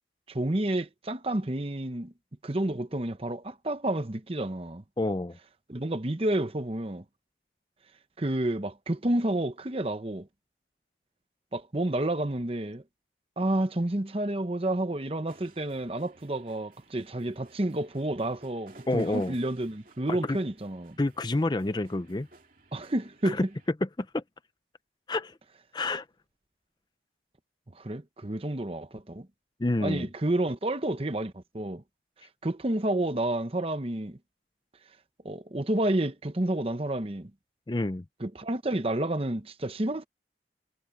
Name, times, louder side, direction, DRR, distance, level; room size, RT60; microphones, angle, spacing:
voice 1, 0.3-2.1 2.4-4.8 5.7-7.0 8.2-10.3 11.5-12.8 13.4-21.0 22.7-23.4 27.7-29.3 29.8-31.8 32.4-34.2 35.2-37.3 38.2-40.1, right 1 dB, 30° right, 0.9 m, -30 dB
voice 2, 5.0-5.4 18.9-19.3 20.1-20.4 21.0-22.3 23.2-23.4 23.8-24.2 25.1-25.3 25.7-26.0 29.6-30.1 37.7-38.0, left 2 dB, 25° left, 0.5 m, -28 dB
sound 1, 15.3-23.7, right 2 dB, 45° right, 2.7 m, -56 dB
head